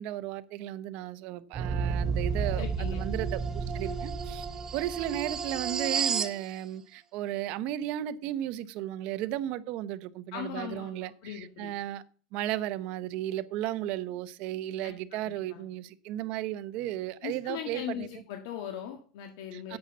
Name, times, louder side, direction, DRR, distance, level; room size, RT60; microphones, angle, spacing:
voice 1, 0.0-4.5 4.7-12.0 12.3-18.1 19.5-19.8, right 13 dB, 50° right, 0.8 m, -35 dB
sound 1, 1.5-6.4, right 5 dB, 20° right, 0.8 m, -31 dB
voice 2, 2.5-3.0 3.8-4.0 10.3-11.7 14.8-14.9 15.2-15.6 17.2-19.8, left 9 dB, 70° left, 1.7 m, -39 dB
8.8 x 7.4 x 7.0 m
supercardioid pair, 160°, 2 cm